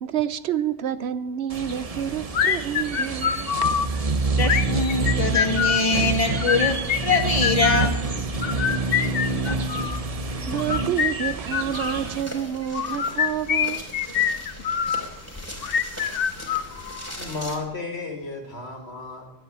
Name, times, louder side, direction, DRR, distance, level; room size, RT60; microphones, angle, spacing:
voice 1, 0.0-3.5 10.5-13.9, right 10 dB, 85° right, 1.0 m, -28 dB
sound 1, 1.5-12.2, right 3 dB, 35° right, 0.9 m, -27 dB
sound 2, 2.3-3.9 4.4-5.9 6.4-7.9 8.4-10.0 10.6-12.0 12.7-15.0 15.6-17.1, left 8 dB, 65° left, 0.9 m, -25 dB
voice 2, 4.3-6.8 7.0-7.9 9.5-9.6, left 3 dB, 35° left, 2.2 m, -23 dB
sound 3, 11.7-17.6, left 1 dB, 15° left, 2.9 m, -39 dB
voice 3, 17.2-19.3, left 3 dB, 80° left, 2.7 m, -33 dB
12.5 x 9.2 x 8.9 m
omnidirectional pair, 1.1 m